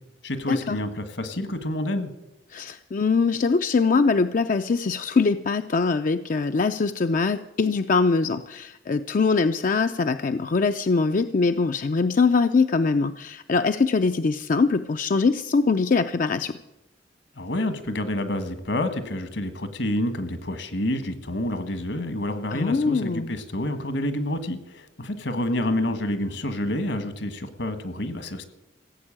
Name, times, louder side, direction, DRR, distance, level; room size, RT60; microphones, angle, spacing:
voice 1, 0.2-2.1 17.3-28.4, left 1 dB, 70° left, 10 dB, 1.6 m, -28 dB
voice 2, 2.5-16.5 22.5-23.3, left 4 dB, 45° left, 9 dB, 0.4 m, -22 dB
16.0 x 8.1 x 8.7 m, 0.97 s
head